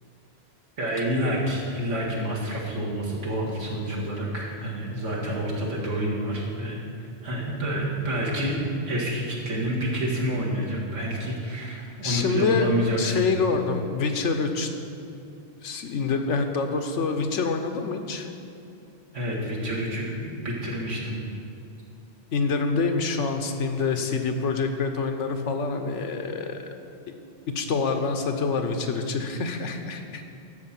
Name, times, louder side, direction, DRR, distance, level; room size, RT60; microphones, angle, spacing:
voice 1, 0.8-8.6 8.8-13.2 19.1-21.2, equal, 90° right, -4 dB, 2.3 m, -28 dB
voice 2, 12.0-12.7 13.0-14.7 15.6-18.3 22.3-26.6 27.5-30.2, left 4 dB, 85° left, 6 dB, 1.2 m, -26 dB
12.5 x 4.9 x 7.4 m, 2.6 s
omnidirectional pair, 1.2 m